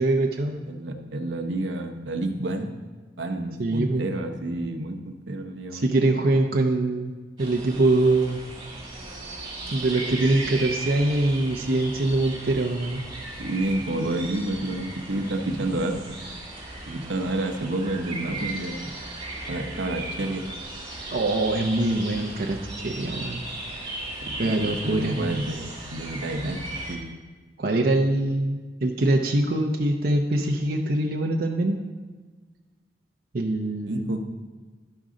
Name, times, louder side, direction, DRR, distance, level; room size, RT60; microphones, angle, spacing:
voice 1, 0.0-0.6 3.6-4.1 5.7-8.4 9.7-13.0 21.1-23.4 24.4-25.2 27.6-31.8 33.3-34.1, right 2 dB, 55° right, 1 dB, 0.6 m, -23 dB
voice 2, 0.7-2.7 3.2-5.9 13.4-16.0 16.9-18.9 19.5-20.4 24.2-27.2 33.9-34.2, right 1 dB, 85° right, 4 dB, 0.8 m, -29 dB
sound 1, 7.4-27.0, right 2 dB, 25° right, 1.9 m, -37 dB
12.0 x 5.1 x 3.7 m, 1.3 s
head